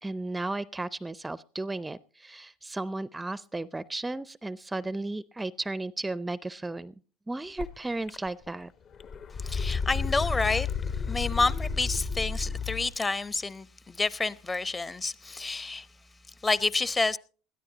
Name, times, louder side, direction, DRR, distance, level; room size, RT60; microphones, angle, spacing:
voice 1, 0.0-6.9 7.3-8.7, right 2 dB, 15° right, 0.5 m, -34 dB
sound 1, 7.6-7.7 8.1-8.6 8.9-12.9, left 5 dB, 45° left, 1.2 m, -31 dB
voice 2, 9.4-15.9 16.4-17.2, left 3 dB, 20° left, 0.8 m, -29 dB
20.5 x 13.5 x 2.9 m
hypercardioid pair, 75°, 0 cm